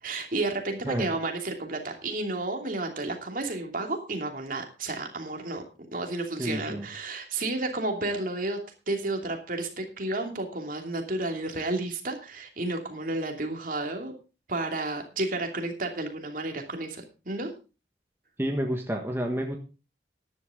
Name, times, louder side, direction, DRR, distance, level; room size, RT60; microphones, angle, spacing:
voice 1, 0.0-5.6 5.9-8.6 8.9-14.1 14.5-17.5, right 2 dB, 50° right, 3 dB, 2.8 m, -31 dB
voice 2, 6.4-6.9 18.4-19.6, equal, 15° right, 2 dB, 1.4 m, -29 dB
13.5 x 11.0 x 3.8 m, 0.32 s
head